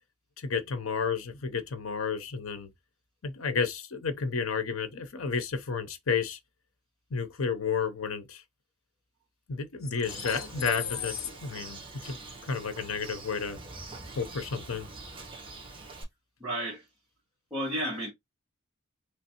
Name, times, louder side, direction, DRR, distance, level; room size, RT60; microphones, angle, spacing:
voice 1, 0.4-2.7 3.2-6.4 7.1-8.4 9.5-12.2 12.4-13.6 14.2-14.9, left 5 dB, 80° left, 0.7 m, -31 dB
Bird, 10.0-16.0, right 3 dB, 25° right, 1.3 m, -44 dB
voice 2, 16.4-16.9 17.5-18.1, equal, 5° right, 1.9 m, -32 dB
3.2 x 3.1 x 2.9 m
head